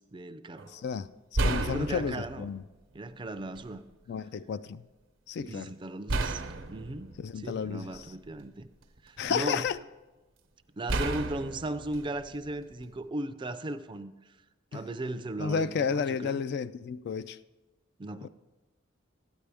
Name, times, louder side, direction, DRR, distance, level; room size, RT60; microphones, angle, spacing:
voice 1, 0.1-0.7 1.6-2.5 2.9-3.9 5.4-6.4 6.7-8.7 9.0-9.7 10.8-14.1 14.7-16.4 18.0-18.3, right 1 dB, 25° right, 0.4 m, -37 dB
sound 1, 0.6-0.7 1.3-2.6 3.6-3.7 6.1-8.3 8.8-9.7 10.9-13.0, right 2 dB, 85° right, 0.9 m, -33 dB
voice 2, 0.7-2.6 4.1-4.8 5.3-5.7 7.2-8.1 9.2-9.8 14.7-14.8 15.4-17.4 18.2-18.3, left 6 dB, 55° left, 0.3 m, -32 dB
13.0 x 9.9 x 3.4 m
head